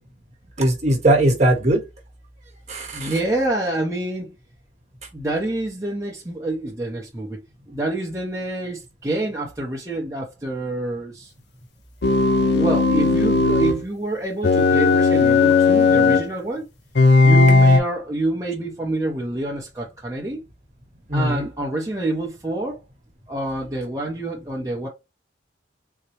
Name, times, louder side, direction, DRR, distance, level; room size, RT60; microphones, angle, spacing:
voice 1, 0.6-1.8 2.7-3.1 21.1-21.5, right 1 dB, 40° right, 1.1 m, -19 dB
voice 2, 2.9-4.3 5.1-11.3 12.5-16.7 17.2-20.4 21.1-22.8 23.3-24.9, right 2 dB, 15° right, 0.7 m, -27 dB
sound 1, 12.0-13.8 14.4-16.3 17.0-17.8, left 4 dB, 60° left, 0.6 m, -16 dB
3.9 x 2.2 x 3.0 m
head